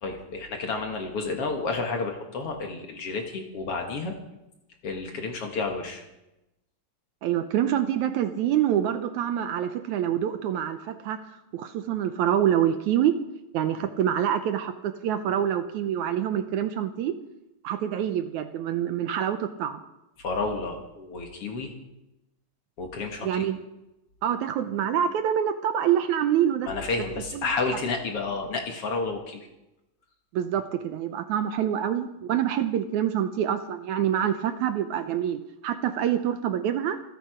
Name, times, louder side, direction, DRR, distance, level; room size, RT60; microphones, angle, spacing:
voice 1, 0.0-4.2 4.8-6.0 20.2-21.7 22.8-23.5 26.7-29.4, left 3 dB, 50° left, 3 dB, 2.2 m, -31 dB
voice 2, 7.2-13.2 13.5-17.1 17.6-19.8 23.2-23.6 24.2-26.7 27.3-27.5 30.3-37.0, right 10 dB, 75° right, 9 dB, 2.0 m, -26 dB
26.5 x 9.4 x 5.0 m, 0.93 s
omnidirectional pair, 3.8 m